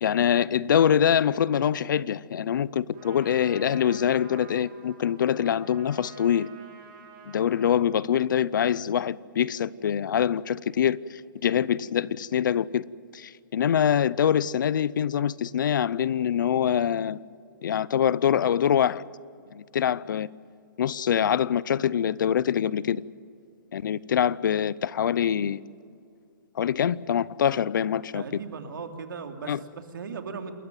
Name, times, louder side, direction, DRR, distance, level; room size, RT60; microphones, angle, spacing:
voice 1, 0.0-6.5 7.3-11.0 11.4-12.8 13.1-17.2 17.6-19.0 19.5-20.3 20.8-23.0 23.7-25.6 26.6-28.2 29.5-29.6, left 9 dB, 65° left, 0.7 m, -24 dB
Trumpet, 2.9-7.9, right 6 dB, 30° right, 5.1 m, -49 dB
voice 2, 28.1-30.5, right 5 dB, 75° right, 2.9 m, -38 dB
28.5 x 14.0 x 9.3 m
hypercardioid pair, 160°, 11 cm